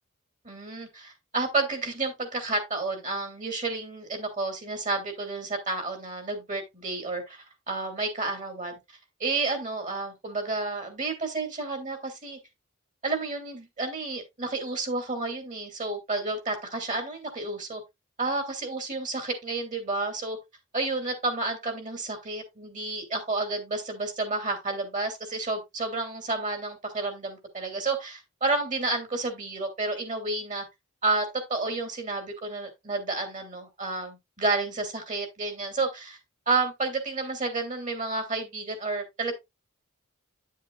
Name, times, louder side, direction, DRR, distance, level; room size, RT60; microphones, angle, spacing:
voice 1, 0.4-8.7 9.2-12.4 13.0-17.8 18.2-20.4 20.7-30.6 31.0-36.2 36.5-39.3, right 3 dB, 35° right, 2.6 m, -30 dB
10.0 x 7.4 x 2.4 m
head